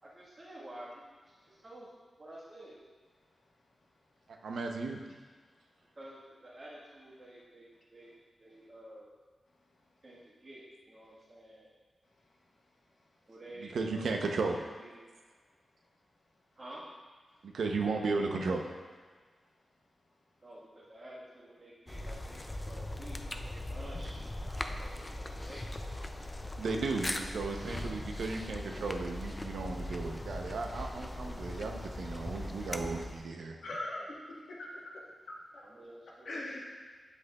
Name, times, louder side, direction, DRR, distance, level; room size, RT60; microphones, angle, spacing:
voice 1, 0.0-1.9 2.2-2.8 5.9-9.1 10.0-11.7 13.3-15.1 16.6-16.8 20.4-25.9 26.4-26.6 34.0-34.1 35.6-36.5, right 1 dB, 35° right, -7 dB, 1.4 m, -50 dB
voice 2, 4.4-5.0 13.6-14.6 17.4-18.7 26.6-33.6, right 3 dB, 85° right, 3 dB, 0.7 m, -35 dB
sound 1, 21.9-33.3, left 1 dB, 15° left, 0.3 m, -40 dB
voice 3, 33.6-34.8 35.2-35.6 36.2-36.6, left 1 dB, 60° left, -4 dB, 1.3 m, -41 dB
8.1 x 8.1 x 2.3 m, 1.5 s
wide cardioid pair, 175°, 0 cm